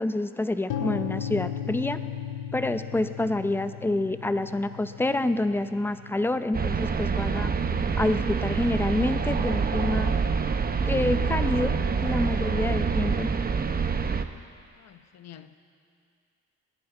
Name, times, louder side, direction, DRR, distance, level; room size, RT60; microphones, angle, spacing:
voice 1, 0.0-2.0 2.5-7.5 8.0-10.2 10.9-11.7 12.0-13.3, left 2 dB, 5° left, 11 dB, 0.6 m, -27 dB
sound 1, 0.7-8.6, left 9 dB, 90° left, 1.0 m, -37 dB
sound 2, 6.5-14.2, right 5 dB, 30° right, 0.8 m, -26 dB
voice 2, 14.8-15.6, left 10 dB, 60° left, 10 dB, 0.9 m, -48 dB
27.5 x 10.5 x 4.5 m, 2.3 s
cardioid pair, 90°, 30 cm